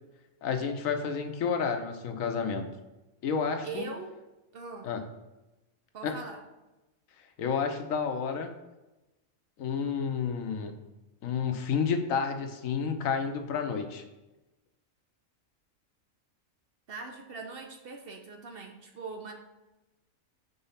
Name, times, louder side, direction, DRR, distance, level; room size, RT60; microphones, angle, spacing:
voice 1, 0.4-2.6 3.2-3.9 4.8-5.0 6.0-6.1 7.4-8.5 9.6-10.7 11.2-14.0, left 6 dB, 80° left, 5 dB, 1.1 m, -30 dB
voice 2, 3.6-4.2 4.5-4.9 5.9-6.4 13.8-13.9 16.9-19.3, right 4 dB, 55° right, 3 dB, 0.7 m, -41 dB
5.4 x 3.9 x 5.6 m, 1.0 s
omnidirectional pair, 1.4 m